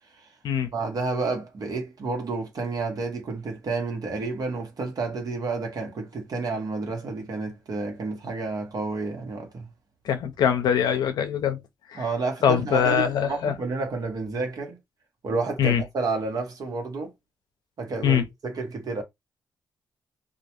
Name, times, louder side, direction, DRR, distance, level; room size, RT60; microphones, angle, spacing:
voice 1, 0.6-9.7 11.9-14.8 15.2-17.1 17.8-19.0, right 3 dB, 60° right, 1.0 m, -30 dB
voice 2, 10.1-11.6 11.9-12.0 12.4-13.5 15.6-15.8 18.0-18.2, left 8 dB, 75° left, 0.5 m, -22 dB
2.4 x 2.1 x 2.9 m
supercardioid pair, 50°, 7 cm